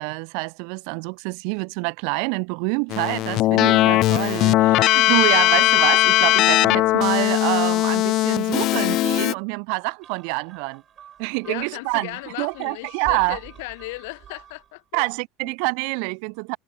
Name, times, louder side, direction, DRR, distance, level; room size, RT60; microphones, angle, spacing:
voice 1, 0.0-10.8 11.2-13.4 14.9-16.6, right 40 dB or more, 65° right, 2.0 m, -26 dB
Keyboard (musical), 2.9-9.3, left 16 dB, 45° left, 0.5 m, -19 dB
sound 1, 10.0-14.8, right 9 dB, 30° right, 5.6 m, -46 dB
voice 2, 11.4-15.1 15.4-15.5, left 25 dB, 75° left, 6.0 m, -36 dB
supercardioid pair, 145°, 0 cm